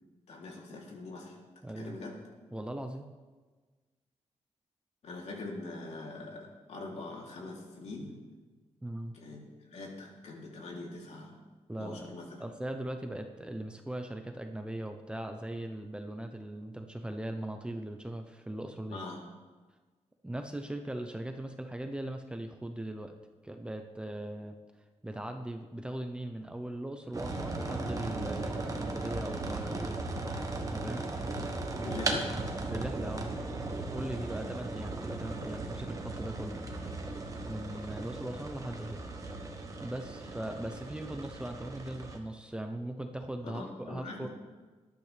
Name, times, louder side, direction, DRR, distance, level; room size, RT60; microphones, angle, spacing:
voice 1, 0.3-1.4 1.8-2.1 5.0-8.1 9.1-11.4 11.8-12.3 18.9-19.2 31.8-32.4 43.4-44.3, left 2 dB, 70° left, -2 dB, 3.2 m, -43 dB
voice 2, 1.6-2.0 2.5-3.1 8.8-9.1 11.7-12.1 12.4-19.0 20.2-23.1 23.4-24.5 25.0-30.0 30.7-31.1 32.7-33.3 33.9-36.6 37.4-39.0 39.8-44.3, right 1 dB, 10° right, 5 dB, 0.8 m, -39 dB
sound 1, 27.1-42.2, right 2 dB, 30° right, 1.4 m, -37 dB
18.5 x 11.5 x 3.4 m, 1.3 s
wide cardioid pair, 140°, 12 cm